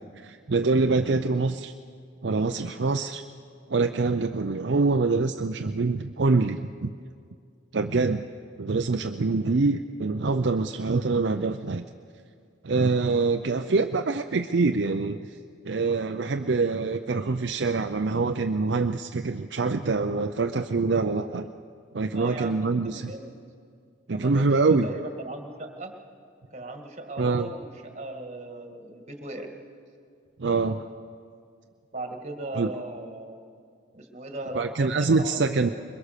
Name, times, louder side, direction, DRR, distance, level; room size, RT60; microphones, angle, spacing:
voice 1, 0.2-1.7 2.2-3.2 3.7-6.9 7.7-8.2 8.6-11.8 12.6-15.2 15.6-21.5 21.9-23.1 24.1-24.9 27.2-27.5 30.4-30.8 32.5-32.7 34.5-35.7, right 3 dB, 60° right, 6 dB, 0.5 m, -25 dB
voice 2, 22.1-23.3 24.1-25.9 26.5-29.5 31.9-33.4 33.9-35.7, right 2 dB, 35° right, 5 dB, 2.0 m, -38 dB
22.5 x 21.5 x 6.6 m, 2.3 s
head